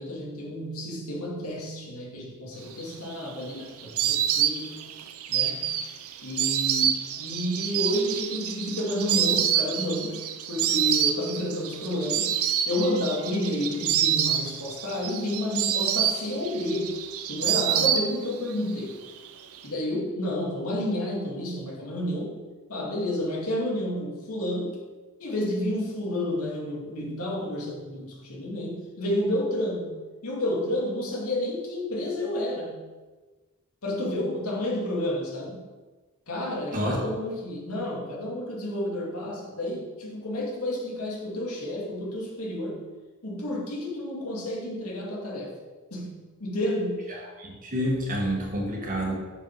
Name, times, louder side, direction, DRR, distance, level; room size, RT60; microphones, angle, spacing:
voice 1, 0.0-4.8 5.3-5.8 6.2-12.4 12.7-16.9 17.3-19.0 19.6-22.4 22.7-24.8 25.2-32.8 33.8-35.6 36.3-42.8 43.2-45.6 45.9-47.0, left 1 dB, 80° left, -3 dB, 2.3 m, -30 dB
Insect, 2.8-18.5 18.8-19.6, right 10 dB, 75° right, 0.6 m, -27 dB
voice 2, 47.4-49.1, equal, 40° right, -2 dB, 1.8 m, -28 dB
6.8 x 5.4 x 5.9 m, 1.3 s
head